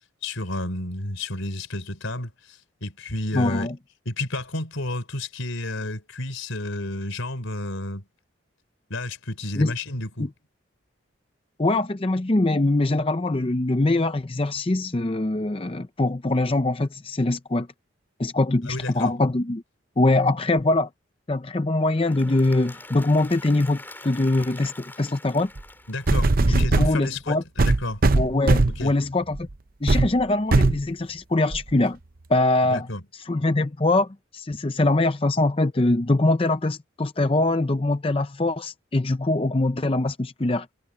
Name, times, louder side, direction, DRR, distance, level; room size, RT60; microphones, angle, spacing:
voice 1, 0.2-3.7 4.1-8.0 8.9-10.3 18.6-19.1 25.9-28.0 28.8-28.9 32.6-33.0, left 2 dB, 85° left, 4.1 m, -31 dB
voice 2, 3.3-3.7 9.6-9.7 10.2-10.3 11.6-17.7 18.2-19.6 20.0-20.9 21.3-25.5 26.5-27.4 28.1-29.5 29.8-32.0 32.3-32.9 33.3-40.7, left 2 dB, 30° left, 0.6 m, -23 dB
Applause / Crowd, 21.7-26.7, left 2 dB, 10° left, 4.3 m, -44 dB
sound 1, 25.6-25.7 26.1-27.0 27.6-28.8 29.3-29.5 29.9-30.1 30.5-30.8 31.5-31.6, right 2 dB, 45° right, 0.7 m, -19 dB
head